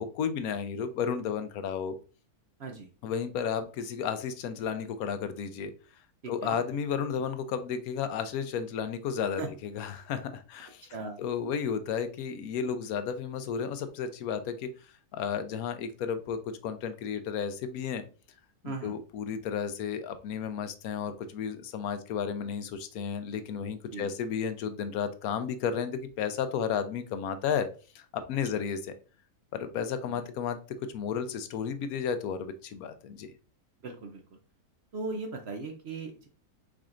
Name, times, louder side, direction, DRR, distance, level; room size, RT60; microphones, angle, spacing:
voice 1, 0.0-1.9 3.0-5.7 6.3-10.9 11.2-14.7 15.1-18.0 18.6-27.7 27.9-28.9 29.5-30.6 30.9-33.3, left 7 dB, 75° left, 10 dB, 1.0 m, -33 dB
voice 2, 6.2-6.6 9.4-9.5 10.9-11.2 18.6-18.9 23.9-24.1 30.1-30.3 33.8-34.4 34.9-36.3, right 3 dB, 60° right, 4 dB, 0.7 m, -38 dB
4.9 x 4.3 x 2.4 m, 0.36 s
omnidirectional pair, 1.6 m